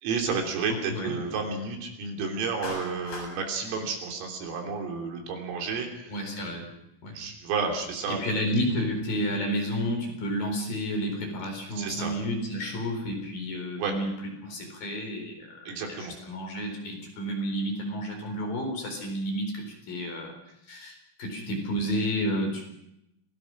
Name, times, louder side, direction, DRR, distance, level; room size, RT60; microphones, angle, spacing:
voice 1, 0.0-6.1 7.1-8.2 11.7-12.1 13.8-14.0 15.7-16.1, right 5 dB, 75° right, 2 dB, 5.9 m, -31 dB
Clapping, 2.6-3.3, left 3 dB, 65° left, 10.5 m, -38 dB
voice 2, 6.1-6.7 7.0-7.2 8.1-14.2 14.4-20.3 20.7-22.6, equal, 45° left, 3 dB, 5.7 m, -31 dB
27.5 x 19.0 x 6.2 m, 0.81 s
omnidirectional pair, 6.0 m